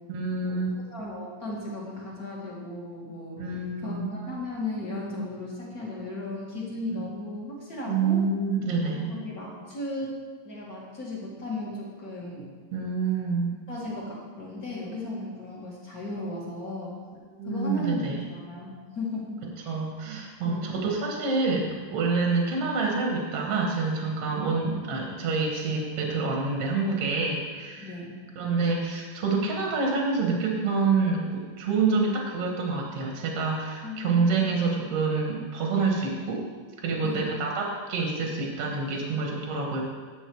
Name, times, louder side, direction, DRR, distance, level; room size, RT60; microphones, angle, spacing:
voice 1, 0.1-0.7 3.4-4.1 6.9-7.0 7.9-9.1 12.7-13.5 17.4-18.3 19.7-27.9 28.4-36.5 36.8-39.8, right 4 dB, 55° right, 0 dB, 1.9 m, -27 dB
voice 2, 0.9-8.2 9.1-10.2 10.4-12.5 13.7-17.0 17.5-18.0 18.3-19.7 20.4-20.8 27.8-28.1 33.8-34.4 37.0-37.3, left 2 dB, 35° left, -5 dB, 1.7 m, -36 dB
11.0 x 7.8 x 4.6 m, 1.5 s
omnidirectional pair, 4.2 m